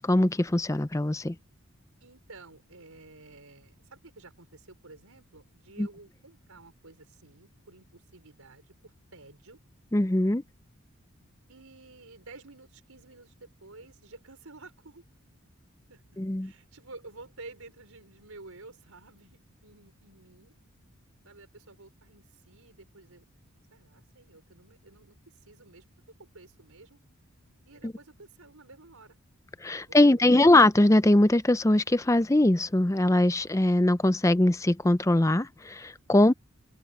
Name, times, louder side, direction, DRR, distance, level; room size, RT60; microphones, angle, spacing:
voice 1, 0.0-1.3 9.9-10.4 16.2-16.5 29.6-36.3, left 1 dB, 15° left, 0.5 m, -22 dB
voice 2, 2.0-9.6 11.5-15.0 15.9-16.0 16.4-20.5 21.2-23.2 23.7-25.9 26.2-27.0 27.7-29.2 29.8-30.5, right 3 dB, 85° right, 5.1 m, -51 dB
open air
head